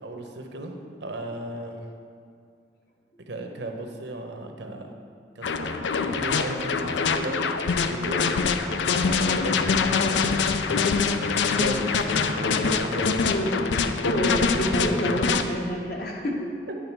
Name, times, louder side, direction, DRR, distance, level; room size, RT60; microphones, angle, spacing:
voice 1, 0.0-1.9 3.3-4.9 5.3-7.5 7.8-8.3 8.9-10.7 11.0-11.9 12.1-13.2 14.8-15.1 16.7-16.8, right 1 dB, 75° right, 3 dB, 0.9 m, -36 dB
sound 1, 5.4-15.4, left 5 dB, 80° left, 0.4 m, -24 dB
sound 2, 8.5-15.2, left 1 dB, 30° left, 1.0 m, -39 dB
voice 2, 14.0-16.5, equal, 55° left, -1 dB, 1.1 m, -27 dB
10.0 x 3.8 x 6.0 m, 2.3 s
head